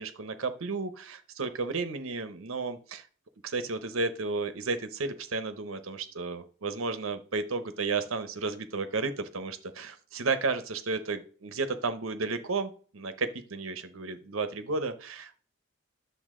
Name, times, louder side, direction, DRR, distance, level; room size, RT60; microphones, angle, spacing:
voice 1, 0.0-3.1 3.4-15.4, right 4 dB, 85° right, 10 dB, 0.9 m, -33 dB
10.0 x 7.0 x 3.7 m, 0.43 s
head